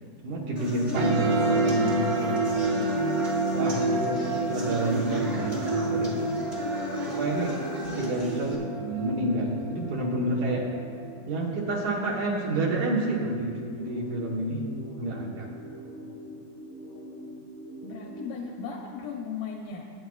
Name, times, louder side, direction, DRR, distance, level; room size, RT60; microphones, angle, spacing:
voice 1, 0.2-2.9 3.5-6.4 7.1-7.5 8.0-10.7 11.3-14.6 15.0-15.5, right 2 dB, 65° right, -3 dB, 2.1 m, -29 dB
sound 1, 0.5-8.5, left 1 dB, 35° right, 0.7 m, -35 dB
sound 2, 1.0-11.9, right 2 dB, 80° right, 3.0 m, -29 dB
voice 2, 1.3-1.6 17.8-19.9, left 5 dB, 80° left, 0 dB, 2.1 m, -37 dB
sound 3, 12.4-18.4, equal, 55° left, 1.3 m, -43 dB
21.5 x 9.8 x 2.4 m, 2.3 s
omnidirectional pair, 4.6 m